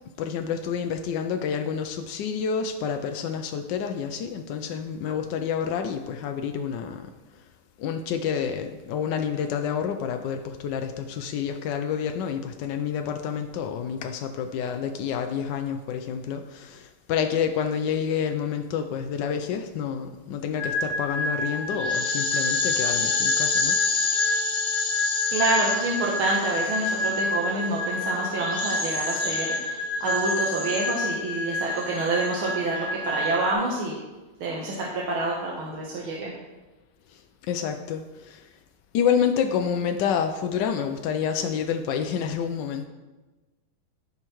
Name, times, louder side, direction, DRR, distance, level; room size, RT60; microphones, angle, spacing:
voice 1, 0.2-7.4 7.8-24.5 27.1-27.2 37.1-37.2 37.5-38.5 38.9-42.8, left 7 dB, 75° left, 5 dB, 1.0 m, -29 dB
sound 1, 20.6-33.5, left 2 dB, 25° left, 1.4 m, -27 dB
voice 2, 25.3-34.0 34.4-36.3, right 2 dB, 75° right, -3 dB, 1.9 m, -27 dB
14.0 x 5.6 x 3.1 m, 1.2 s
omnidirectional pair, 2.3 m